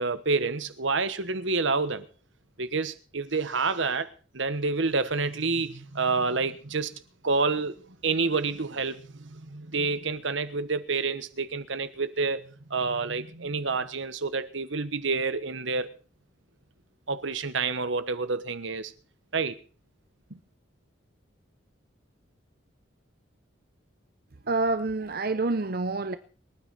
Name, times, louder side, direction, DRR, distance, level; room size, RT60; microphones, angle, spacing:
voice 1, 0.0-2.1 2.6-4.1 4.3-6.9 7.2-7.8 8.0-9.0 9.7-15.9 17.1-18.9 19.3-19.6 20.3-20.4, right 4 dB, 70° right, 1.2 m, -28 dB
sound 1, 4.8-6.6 8.5-10.4 12.2-14.1, right 2 dB, 85° right, 1.5 m, -49 dB
voice 2, 24.4-26.2, right 3 dB, 50° right, 0.7 m, -27 dB
24.5 x 9.5 x 4.1 m
head